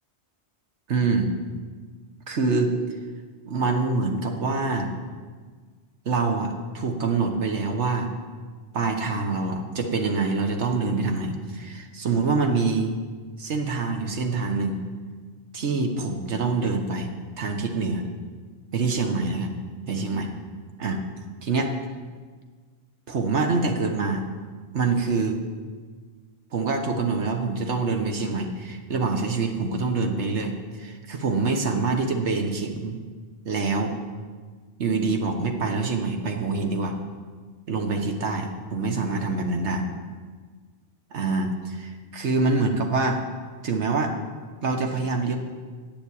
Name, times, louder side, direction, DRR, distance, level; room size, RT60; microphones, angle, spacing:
voice 1, 0.9-1.3 2.3-2.8 3.4-4.9 6.0-8.1 8.7-12.9 13.4-14.8 15.5-17.1 17.4-18.0 18.7-19.6 19.9-20.3 20.8-21.0 21.4-21.7 23.1-24.2 24.7-25.4 26.5-33.0 33.4-33.9 34.8-37.0 37.7-39.8 41.1-43.2 43.6-44.1 44.6-45.4, right 3 dB, 80° right, 4 dB, 1.4 m, -25 dB
9.8 x 7.3 x 8.3 m, 1.5 s
omnidirectional pair, 1.2 m